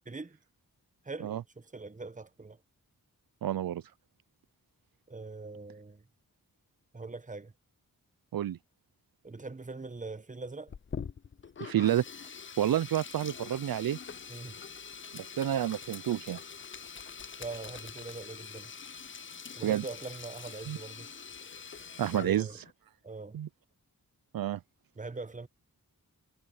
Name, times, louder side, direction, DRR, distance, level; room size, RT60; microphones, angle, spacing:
voice 1, 0.0-0.4 1.0-2.6 5.1-6.0 6.9-7.5 9.2-10.7 14.3-14.6 17.4-18.7 19.6-21.1 22.1-22.6 23.0-23.4 25.0-25.5, right 3 dB, 20° right, 1.0 m, -42 dB
voice 2, 3.4-3.8 8.3-8.6 11.6-12.0 12.6-14.0 15.1-16.4 19.6-19.8 20.7-20.8 22.0-22.5 23.3-23.5 24.3-24.6, right 11 dB, 75° right, 0.5 m, -29 dB
Sink (filling or washing), 10.7-22.7, left 6 dB, 35° left, 0.5 m, -44 dB
wide cardioid pair, 65°, 36 cm